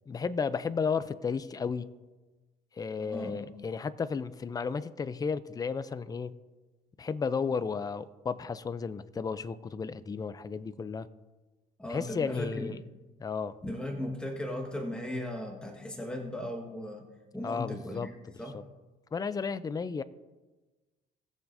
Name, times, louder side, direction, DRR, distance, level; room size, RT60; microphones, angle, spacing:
voice 1, 0.1-1.9 2.7-6.4 7.0-11.1 11.9-12.8 13.2-13.7 17.4-18.1 19.1-20.0, left 5 dB, 20° left, 14 dB, 0.5 m, -33 dB
voice 2, 3.0-3.5 11.8-12.8 13.6-17.0 17.3-18.6, left 1 dB, 5° left, 1 dB, 1.5 m, -37 dB
20.0 x 7.1 x 2.7 m, 1.2 s
cardioid pair, 110°, 17 cm